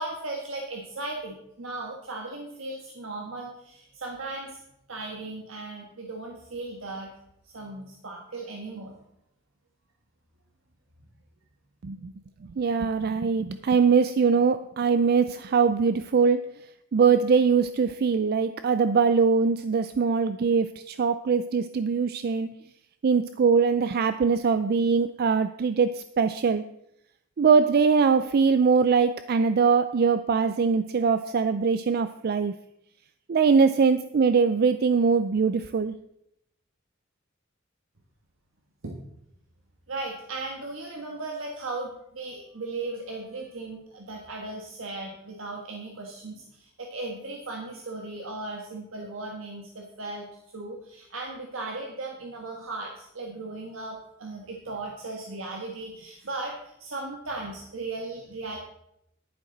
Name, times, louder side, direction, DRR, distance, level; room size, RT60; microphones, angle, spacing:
voice 1, 0.0-4.6 4.9-7.1 7.5-9.0 38.8-39.0 39.9-50.2 50.5-58.6, right 2 dB, 70° right, 0 dB, 1.4 m, -37 dB
voice 2, 12.6-16.4 16.9-22.5 23.0-26.6 27.4-32.5 33.3-35.9, right 5 dB, 50° right, 12 dB, 0.4 m, -22 dB
11.0 x 10.0 x 3.9 m, 0.80 s
head